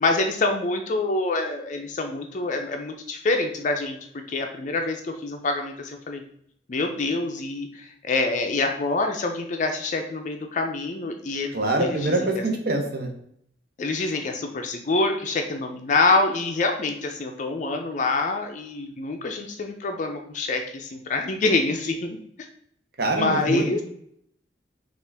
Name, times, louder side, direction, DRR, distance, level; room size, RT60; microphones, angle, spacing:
voice 1, 0.0-4.0 4.3-6.2 6.7-11.5 11.8-12.1 13.8-22.2 23.2-23.8, left 3 dB, 40° left, 4 dB, 0.4 m, -26 dB
voice 2, 11.5-13.1 23.0-23.8, right 2 dB, 55° right, 3 dB, 0.8 m, -25 dB
5.7 x 2.4 x 3.3 m, 0.68 s
head